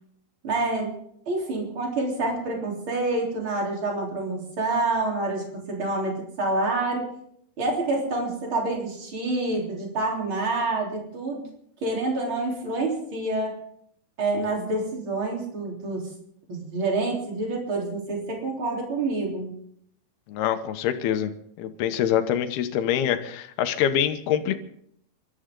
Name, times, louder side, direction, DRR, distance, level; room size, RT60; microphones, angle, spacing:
voice 1, 0.4-0.9 1.3-7.1 7.6-11.5 11.8-13.6 14.2-16.1 16.5-19.5, right 2 dB, 35° right, -1 dB, 4.1 m, -27 dB
voice 2, 20.3-21.3 21.6-24.6, left 10 dB, 80° left, 9 dB, 2.9 m, -25 dB
28.0 x 13.0 x 3.8 m, 0.69 s
omnidirectional pair, 4.6 m